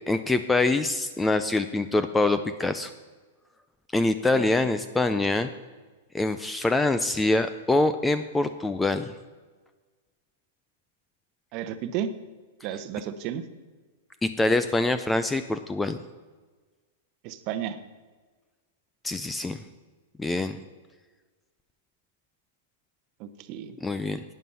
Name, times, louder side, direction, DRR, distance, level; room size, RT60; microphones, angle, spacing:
voice 1, 0.1-2.9 3.9-5.5 6.1-9.1 14.2-16.0 19.0-19.6 20.2-20.6 23.8-24.2, left 2 dB, 5° left, 11 dB, 0.4 m, -25 dB
voice 2, 11.5-12.1 12.6-13.5 17.2-17.8 23.2-23.8, right 10 dB, 35° right, 11 dB, 0.8 m, -32 dB
11.5 x 9.3 x 5.5 m, 1.4 s
supercardioid pair, 160°, 0 cm